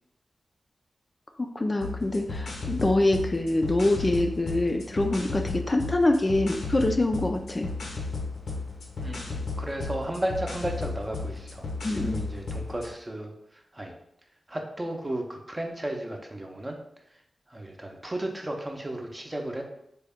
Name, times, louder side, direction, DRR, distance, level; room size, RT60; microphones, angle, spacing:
voice 1, 1.4-7.7 11.8-12.3, left 2 dB, 35° left, 4 dB, 0.4 m, -25 dB
sound 1, 1.8-12.9, left 3 dB, 85° left, 0.6 m, -34 dB
voice 2, 9.0-13.3 13.7-13.9 14.5-16.8 17.5-19.6, right 1 dB, 25° right, 2 dB, 0.6 m, -34 dB
3.4 x 2.2 x 3.5 m, 0.75 s
cardioid pair, 45°, 0 cm